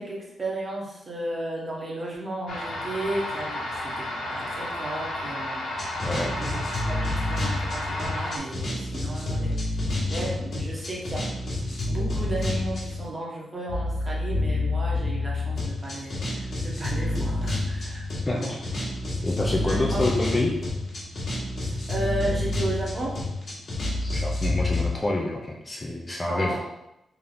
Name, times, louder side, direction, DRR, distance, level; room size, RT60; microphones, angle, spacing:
voice 1, 0.0-11.3 11.8-18.5 19.5-20.2 21.6-23.2 26.2-26.6, right 1 dB, 30° right, -3 dB, 1.1 m, -34 dB
sound 1, 2.5-8.4, left 1 dB, 75° left, 0.7 m, -32 dB
sound 2, 5.7-13.0 13.7-24.9, left 2 dB, 50° left, 1.3 m, -29 dB
voice 2, 6.0-6.4 18.3-18.6 19.2-20.5 24.0-26.6, left 2 dB, 20° left, -1 dB, 0.5 m, -27 dB
3.5 x 2.8 x 3.8 m, 0.88 s
cardioid pair, 110°, 0 cm